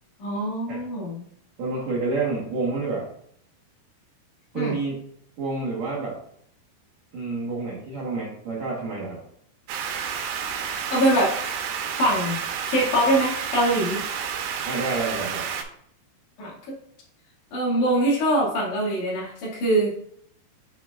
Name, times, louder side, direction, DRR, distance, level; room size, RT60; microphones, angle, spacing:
voice 1, 0.2-1.2 4.5-4.7 10.9-11.3 12.0-12.4 12.7-14.0 16.4-16.5 17.5-19.9, right 1 dB, 55° left, -4 dB, 3.2 m, -23 dB
voice 2, 1.6-3.1 4.5-5.0 5.4-6.2 7.1-9.2 14.6-15.5, right 3 dB, 65° right, -6 dB, 1.8 m, -28 dB
sound 1, 9.7-15.6, right 7 dB, 80° right, 2.7 m, -30 dB
7.5 x 5.6 x 2.4 m, 0.67 s
omnidirectional pair, 4.7 m